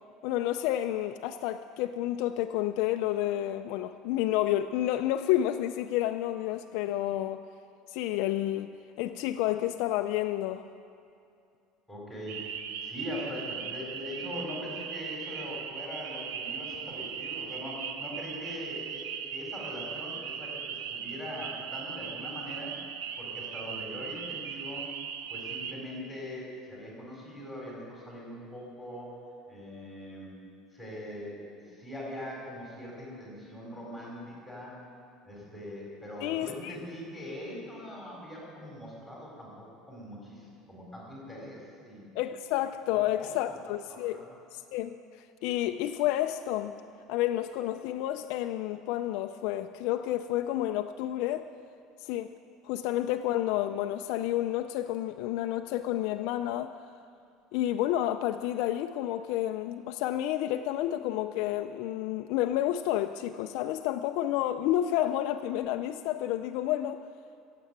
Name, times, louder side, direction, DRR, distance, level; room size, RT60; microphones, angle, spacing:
voice 1, 0.2-7.4 7.9-10.6 36.2-36.8 42.1-44.2 44.5-45.0 45.4-46.8 47.1-51.5 52.0-52.3 52.6-56.7 57.5-67.0, left 13 dB, 65° left, 8 dB, 0.4 m, -30 dB
voice 2, 11.9-12.4 12.8-22.8 23.2-24.9 25.3-29.1 29.5-30.4 30.7-34.7 35.2-42.1 42.9-43.6 43.9-44.3, left 1 dB, ahead, -4 dB, 4.0 m, -42 dB
sound 1, 12.3-25.7, right 7 dB, 90° right, 0.8 m, -38 dB
15.0 x 7.6 x 8.1 m, 2.5 s
cardioid pair, 165°, 0 cm